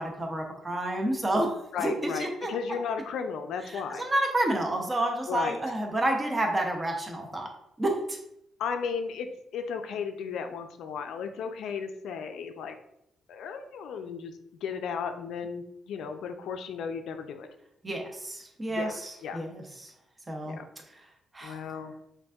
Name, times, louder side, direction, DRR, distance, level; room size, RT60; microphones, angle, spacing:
voice 1, 0.0-2.5 3.7-7.5 7.8-8.2 17.8-19.9 20.3-20.6 21.3-21.6, right 1 dB, 20° right, 1 dB, 0.7 m, -30 dB
voice 2, 1.7-4.0 5.3-5.6 8.6-9.3 9.5-12.7 13.3-14.3 14.6-17.5 18.7-18.9 19.2-19.4 20.4-20.6 21.4-21.9, left 6 dB, 80° left, 6 dB, 0.4 m, -34 dB
5.1 x 2.5 x 2.4 m, 0.78 s
cardioid pair, 90°, 0 cm